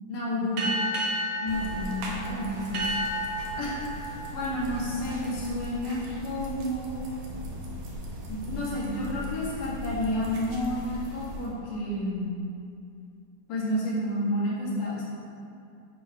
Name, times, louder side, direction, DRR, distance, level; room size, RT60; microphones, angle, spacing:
voice 1, 0.1-0.7 1.4-3.0 3.6-7.0 8.3-12.3 13.5-15.0, left 1 dB, 85° left, -6 dB, 3.2 m, -30 dB
sound 1, 0.6-5.7, right 1 dB, 55° right, 1.2 m, -33 dB
sound 2, 1.5-11.5, left 1 dB, 80° right, 2.5 m, -39 dB
8.2 x 4.6 x 4.8 m, 2.5 s
omnidirectional pair, 3.6 m